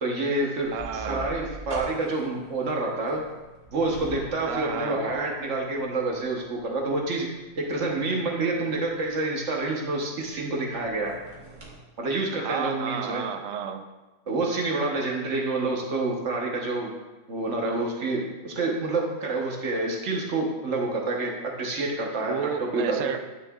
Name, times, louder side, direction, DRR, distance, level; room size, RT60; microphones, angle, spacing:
voice 1, 0.0-0.7 1.1-3.2 3.7-7.3 7.6-11.1 12.0-13.2 14.3-16.9 17.3-21.3 21.6-23.1, right 2 dB, 50° right, 0 dB, 1.2 m, -28 dB
sound 1, 0.6-11.8, right 1 dB, 30° right, 1.4 m, -45 dB
voice 2, 0.7-1.2 4.5-5.0 12.4-13.9 22.2-23.4, right 7 dB, 70° right, 7 dB, 0.8 m, -32 dB
9.8 x 6.3 x 2.3 m, 1.2 s
omnidirectional pair, 1.7 m